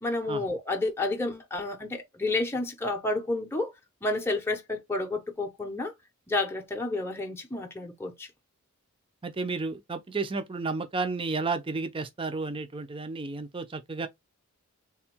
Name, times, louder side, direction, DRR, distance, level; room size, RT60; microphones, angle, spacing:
voice 1, 0.0-3.7 4.0-5.9 6.3-8.3, left 2 dB, 10° left, 0.7 m, -30 dB
voice 2, 9.2-14.1, right 3 dB, 25° right, 0.5 m, -32 dB
3.5 x 2.2 x 4.4 m
head